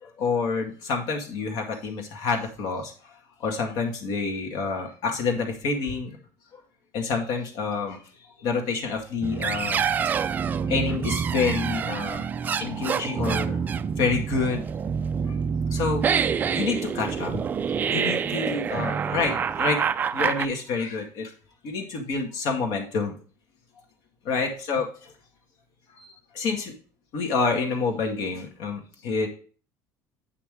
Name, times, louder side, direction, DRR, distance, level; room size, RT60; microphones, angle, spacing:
voice 1, 0.0-2.9 3.4-6.1 6.5-6.6 6.9-8.0 8.4-9.9 10.7-12.2 12.6-13.6 14.0-14.6 15.3-15.4 15.7-16.1 16.5-19.8 20.1-21.3 21.6-23.1 24.3-25.1 26.0-26.7 27.1-29.3, left 4 dB, 55° left, 2 dB, 2.0 m, -28 dB
sound 1, 9.2-20.5, right 7 dB, 20° right, 0.3 m, -27 dB
8.9 x 5.9 x 3.6 m, 0.39 s
cardioid pair, 165°, 8 cm